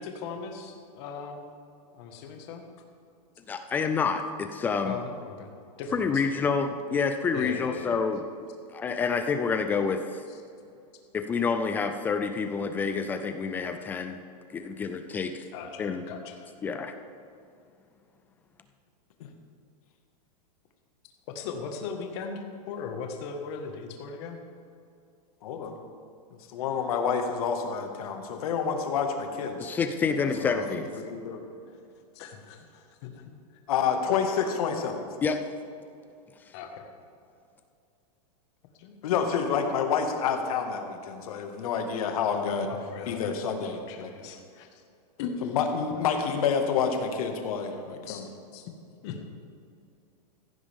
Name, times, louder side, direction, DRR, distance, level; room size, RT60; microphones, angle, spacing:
voice 1, 0.0-1.5 1.9-2.6 4.8-5.5 5.8-6.4 7.3-8.1 10.3-10.4 15.5-16.5 21.3-24.4 32.1-33.3 36.5-36.9 38.8-38.9 42.7-43.3 43.6-44.8 45.2-45.6 45.9-46.1 48.1-48.3 48.5-48.7 49.0-49.2, left 5 dB, 40° left, 4 dB, 1.7 m, -39 dB
voice 2, 3.5-4.9 5.9-8.2 8.7-10.2 11.1-14.2 14.5-15.4 15.8-16.1 16.6-16.9 29.6-30.9 35.2-35.4, left 5 dB, 10° left, 8 dB, 0.3 m, -28 dB
voice 3, 25.4-25.7 26.5-29.7 30.4-30.7 31.1-31.4 33.7-35.0 39.0-42.7 43.1-44.1 45.4-48.2, left 6 dB, 60° left, 4 dB, 1.9 m, -28 dB
15.5 x 14.5 x 3.6 m, 2.5 s
supercardioid pair, 160°, 21 cm